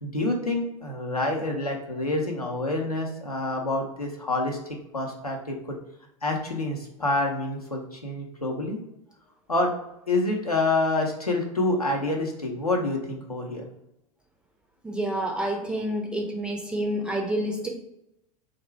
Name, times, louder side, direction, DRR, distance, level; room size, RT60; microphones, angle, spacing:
voice 1, 0.0-4.6 4.9-5.8 6.2-8.8 9.5-9.7 10.1-13.6, left 2 dB, 90° left, 1 dB, 0.6 m, -27 dB
voice 2, 14.8-17.7, right 1 dB, 5° right, 1 dB, 0.4 m, -28 dB
2.3 x 2.1 x 3.2 m, 0.83 s
figure-of-eight pair, 85°, 19 cm